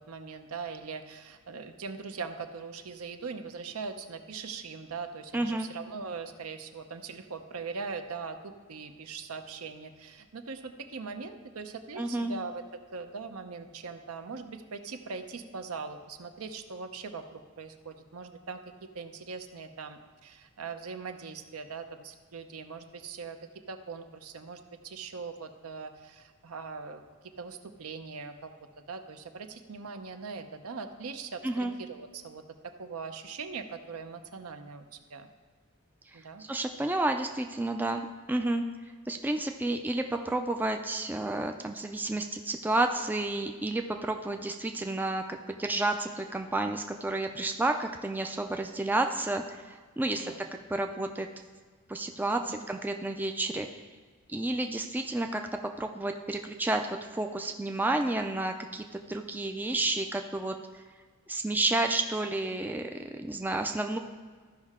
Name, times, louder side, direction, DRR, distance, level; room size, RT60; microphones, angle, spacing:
voice 1, 0.1-23.4 23.7-27.0 27.4-34.8 35.1-35.3 36.1-36.4 50.1-50.4 52.4-52.6, right 5 dB, 75° right, 7 dB, 0.7 m, -41 dB
voice 2, 5.3-5.7 12.0-12.3 31.4-31.7 36.5-38.6 39.1-51.3 51.9-53.7 54.3-55.5 55.8-60.8 61.3-64.0, right 2 dB, 10° right, 5 dB, 0.3 m, -31 dB
14.0 x 5.4 x 3.6 m, 1.5 s
head